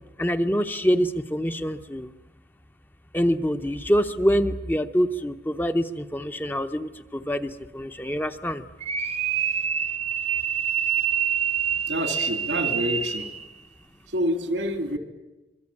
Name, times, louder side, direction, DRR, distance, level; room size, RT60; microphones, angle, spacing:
voice 1, 0.2-2.1 3.1-8.6, equal, 10° left, 8 dB, 0.8 m, -25 dB
sound 1, 8.8-13.5, right 8 dB, 35° right, 0.9 m, -26 dB
voice 2, 11.9-13.3 14.1-15.0, equal, 90° right, 7 dB, 2.9 m, -27 dB
25.5 x 23.0 x 8.5 m, 1.1 s
head